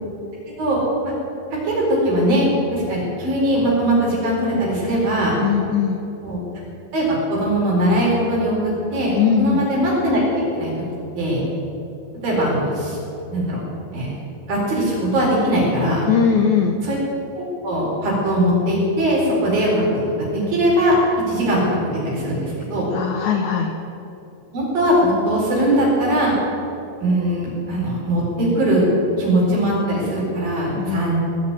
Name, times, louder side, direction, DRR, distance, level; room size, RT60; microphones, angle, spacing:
voice 1, 0.6-1.1 1.5-5.4 6.2-6.4 6.9-10.7 11.2-11.4 12.2-13.0 13.3-13.6 13.9-14.1 14.5-16.0 16.8-17.0 17.3-21.0 21.3-22.9 24.5-26.4 27.0-28.8 29.2-31.2, right 1 dB, 75° right, -4 dB, 6.2 m, -20 dB
voice 2, 5.4-6.0 9.2-9.7 16.1-16.8 22.9-23.7 30.8-31.1, left 7 dB, 75° left, 4 dB, 1.8 m, -20 dB
18.5 x 7.5 x 9.6 m, 2.9 s
omnidirectional pair, 4.1 m